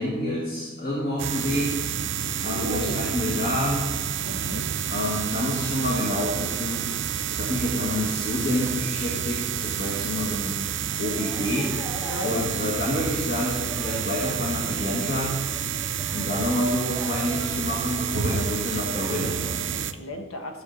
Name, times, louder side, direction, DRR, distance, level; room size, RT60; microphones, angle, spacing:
voice 1, 0.0-1.8 2.4-4.0 4.9-6.9 7.3-10.6 10.9-11.7 12.2-15.3 16.1-19.7, left 1 dB, 45° left, -4 dB, 1.9 m, -28 dB
sound 1, 1.2-19.9, right 8 dB, 60° right, 0.5 m, -29 dB
voice 2, 2.4-3.2 4.2-4.7 12.0-12.5 18.1-19.2 19.7-20.6, left 1 dB, 85° left, 4 dB, 1.3 m, -36 dB
sound 2, 11.2-19.5, right 1 dB, 5° right, 1.2 m, -41 dB
14.0 x 7.2 x 4.1 m, 1.5 s
head